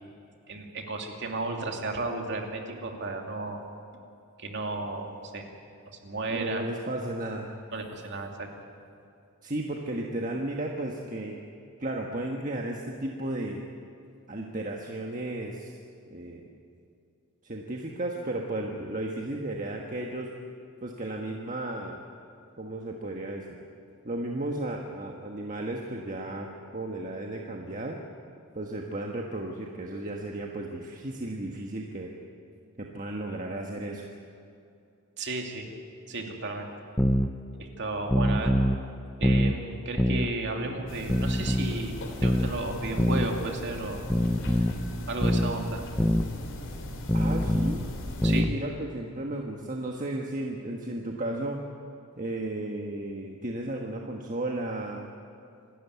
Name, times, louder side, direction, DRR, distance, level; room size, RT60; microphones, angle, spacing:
voice 1, 0.5-3.6 4.4-5.5 5.9-6.6 7.7-8.5 35.2-35.7 36.1-36.7 37.6-38.5 39.2-41.9 42.2-44.0 45.1-45.8 48.2-48.5, right 2 dB, 50° right, 2 dB, 2.6 m, -33 dB
voice 2, 6.3-7.5 9.4-11.4 11.8-13.6 14.3-15.8 16.1-16.5 17.4-20.3 20.8-22.0 22.6-23.5 24.0-28.0 28.5-32.1 32.8-34.1 47.1-47.9 48.2-51.6 52.2-55.1, right 1 dB, 35° right, 0 dB, 1.4 m, -34 dB
sound 1, 37.0-37.3 38.1-38.8 39.2-39.6 40.0-40.3 41.1-41.8 42.2-42.5 43.0-43.3 44.1-44.8 45.2-45.6 46.0-46.3 47.1-47.8 48.2-48.6, equal, 10° left, 0.7 m, -24 dB
sound 2, 40.9-48.4, left 1 dB, 60° left, 3.2 m, -40 dB
27.0 x 13.0 x 9.5 m, 2.5 s
head